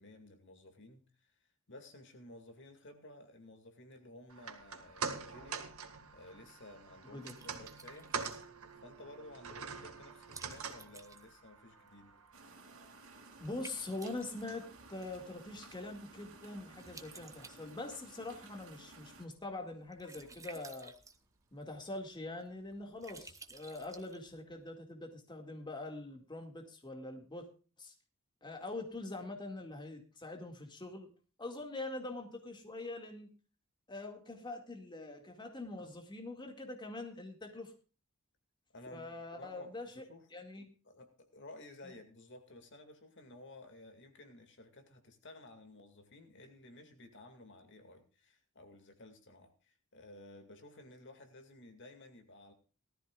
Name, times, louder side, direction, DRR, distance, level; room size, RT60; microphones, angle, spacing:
voice 1, 0.0-1.3 1.7-8.1 8.8-12.1 38.7-40.2 40.8-52.5, left 2 dB, 60° left, 6 dB, 2.3 m, -55 dB
sound 1, 4.3-16.7 17.0-17.1, right 5 dB, 85° right, 2.0 m, -46 dB
Liquid, 5.9-24.7, right 4 dB, 15° right, 1.0 m, -58 dB
sound 2, 12.3-19.3, right 3 dB, 70° right, 2.7 m, -56 dB
voice 2, 13.4-20.9 21.5-27.5 27.8-27.9 28.4-31.1 31.4-33.3 33.9-37.7 38.9-40.0 40.3-40.7, left 2 dB, 20° left, 3 dB, 2.1 m, -44 dB
18.5 x 13.5 x 2.4 m, 0.34 s
head